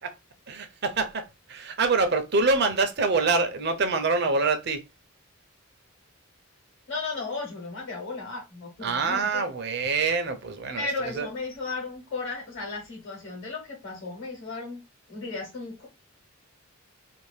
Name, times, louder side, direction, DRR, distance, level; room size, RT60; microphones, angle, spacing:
voice 1, 0.5-4.8 8.8-11.3, right 4 dB, 50° right, 0.6 m, -25 dB
voice 2, 6.9-9.5 10.8-14.8 15.1-15.9, left 3 dB, 55° left, 1.1 m, -35 dB
2.6 x 2.5 x 3.2 m
head